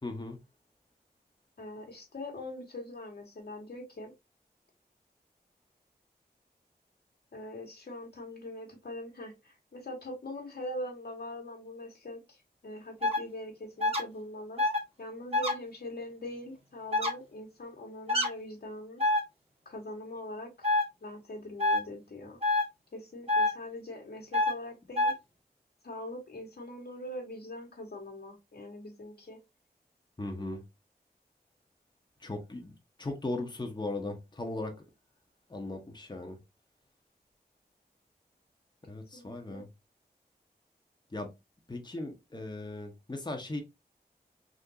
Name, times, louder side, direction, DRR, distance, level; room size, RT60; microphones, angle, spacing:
voice 1, 0.0-0.4 30.2-30.6 32.2-32.7 33.0-34.7 35.5-36.4 38.9-39.7 41.1-41.3 41.7-43.6, left 2 dB, 25° left, 0.8 m, -37 dB
voice 2, 1.6-4.1 7.3-14.6 15.0-19.0 19.6-20.7 21.0-22.4 22.9-25.1 25.8-29.4 39.1-39.6, left 1 dB, 75° left, 1.3 m, -42 dB
sound 1, 13.0-13.2 13.8-14.0 14.6-14.8 15.3-15.5 16.9-17.1 18.1-18.3 19.0-19.2 20.6-20.8 21.6-21.8 22.4-22.6 23.3-23.5 24.3-24.5 25.0-25.1, left 2 dB, 35° right, 1.4 m, -26 dB
3.7 x 2.5 x 2.7 m
cardioid pair, 45°, 17 cm